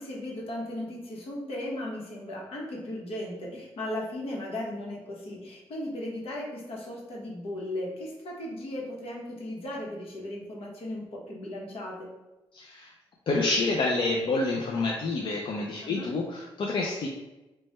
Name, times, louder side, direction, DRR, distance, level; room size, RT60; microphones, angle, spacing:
voice 1, 0.0-12.1 15.8-16.1, left 1 dB, 75° left, -2 dB, 1.0 m, -36 dB
voice 2, 12.5-12.9 13.3-17.1, left 3 dB, 55° left, -1 dB, 0.5 m, -28 dB
3.1 x 2.2 x 4.2 m, 1.0 s
cardioid pair, 95°, 10 cm